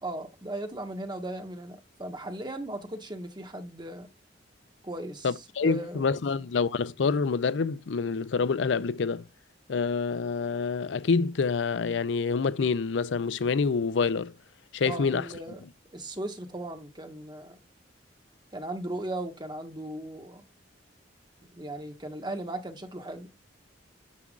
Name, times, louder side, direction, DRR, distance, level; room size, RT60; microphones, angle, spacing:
voice 1, 0.0-4.1 4.8-5.3 5.6-6.0 14.8-15.6 15.9-17.6 18.5-20.4 21.5-23.3, right 1 dB, 25° right, 1.5 m, -37 dB
voice 2, 5.2-9.2 9.7-14.3 14.7-15.3, left 5 dB, 70° left, 0.5 m, -27 dB
9.7 x 7.3 x 2.4 m
head